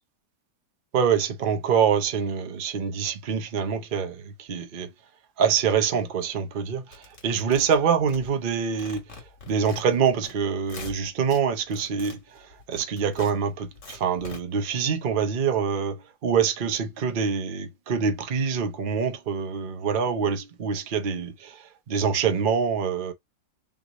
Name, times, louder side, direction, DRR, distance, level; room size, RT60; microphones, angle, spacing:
voice 1, 0.9-4.9 5.4-9.0 9.5-12.2 12.7-21.6 21.9-23.1, right 6 dB, 55° right, 0.5 m, -25 dB
sound 1, 6.9-8.5 8.8-10.3 10.6-11.4 11.7-14.4, left 4 dB, 40° left, 1.7 m, -43 dB
3.8 x 3.1 x 3.9 m
omnidirectional pair, 2.0 m